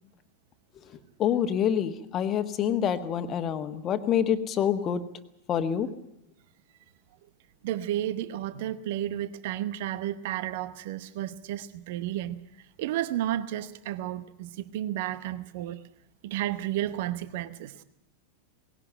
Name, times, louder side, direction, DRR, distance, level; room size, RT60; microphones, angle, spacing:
voice 1, 1.2-5.0 5.5-5.9, left 9 dB, 30° left, 1.5 m, -26 dB
voice 2, 7.6-12.4 12.8-15.8 16.2-17.7, right 12 dB, 50° right, 0.9 m, -32 dB
19.0 x 17.0 x 8.9 m
figure-of-eight pair, 90°, 0 cm